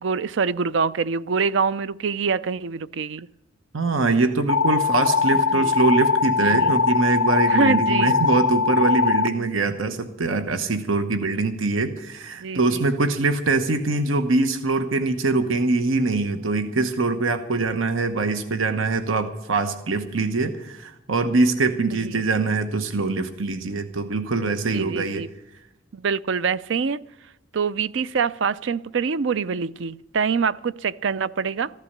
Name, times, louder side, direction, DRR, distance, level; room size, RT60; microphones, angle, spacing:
voice 1, 0.0-3.3 5.5-5.7 6.4-6.7 7.5-8.2 12.4-12.8 22.0-22.1 24.7-25.3 25.9-27.0 27.5-31.7, right 5 dB, 65° right, 0.5 m, -25 dB
voice 2, 3.7-25.2, right 3 dB, 80° right, 1.0 m, -23 dB
sound 1, 4.5-9.3, left 5 dB, 90° left, 0.7 m, -21 dB
15.0 x 12.0 x 6.7 m
head